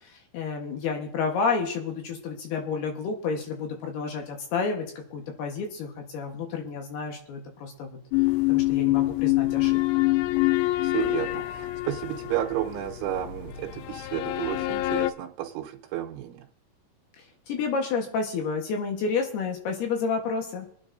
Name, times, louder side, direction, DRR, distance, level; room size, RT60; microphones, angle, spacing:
voice 1, 0.0-8.0 8.5-9.8 11.0-11.1 17.5-20.7, left 5 dB, 65° left, 2 dB, 2.8 m, -30 dB
sound 1, 8.1-15.1, left 19 dB, 85° left, 2.4 m, -26 dB
voice 2, 10.8-16.4, right 13 dB, 80° right, 0 dB, 3.2 m, -32 dB
25.0 x 9.7 x 2.6 m, 0.63 s
omnidirectional pair, 5.6 m